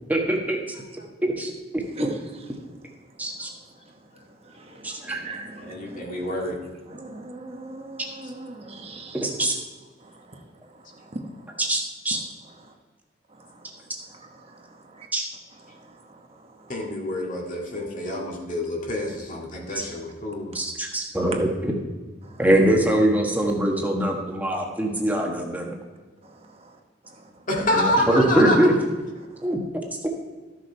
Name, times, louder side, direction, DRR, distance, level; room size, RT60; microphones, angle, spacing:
voice 1, 0.1-0.6 1.2-1.8 3.2-3.5 4.8-5.2 9.1-9.6 11.6-12.2 15.1-15.2 20.5-21.7 22.4-25.7 27.7-28.7 29.4-29.6, right 1 dB, 10° right, 0 dB, 1.3 m, -23 dB
voice 2, 4.8-6.4 6.9-9.2 10.0-10.4 14.4-14.5 14.9-15.1, right 2 dB, 35° right, 2 dB, 1.0 m, -39 dB
voice 3, 5.6-6.6 16.7-20.5 27.5-28.6, left 1 dB, 45° left, -1 dB, 2.0 m, -27 dB
13.5 x 6.7 x 4.5 m, 1.3 s
head